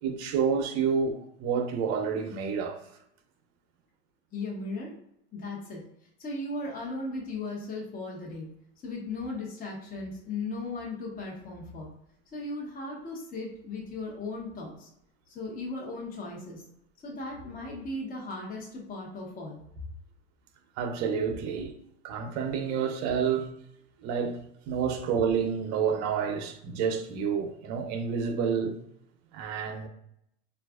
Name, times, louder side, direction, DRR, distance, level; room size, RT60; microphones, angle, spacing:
voice 1, 0.0-2.8 20.8-21.7 22.0-23.5 24.0-24.4 24.7-28.8 29.3-29.9, right 6 dB, 50° right, 0.7 m, -29 dB
voice 2, 4.3-4.9 5.3-5.8 6.2-8.5 8.8-11.9 12.3-14.9 15.3-16.6 17.0-19.6, left 2 dB, 25° left, 0.9 m, -37 dB
3.9 x 2.4 x 2.3 m
supercardioid pair, 120°, 35 cm